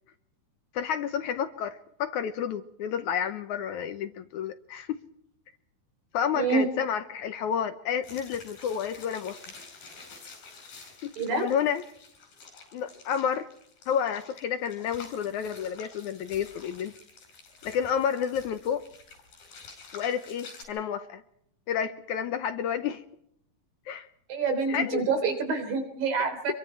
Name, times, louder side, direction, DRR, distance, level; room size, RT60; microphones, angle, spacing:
voice 1, 0.7-5.0 6.1-9.4 11.0-11.8 12.7-13.5 13.9-17.0 17.6-18.9 19.9-21.2 21.7-23.0 23.9-24.1 24.7-25.0 26.2-26.5, left 8 dB, 70° left, 10 dB, 2.1 m, -30 dB
voice 2, 6.4-6.7 11.2-11.5 24.3-26.5, right 4 dB, 75° right, 6 dB, 5.4 m, -27 dB
sound 1, 8.0-20.7, left 4 dB, 90° left, 7.1 m, -49 dB
25.5 x 23.0 x 4.6 m, 0.72 s
omnidirectional pair, 4.1 m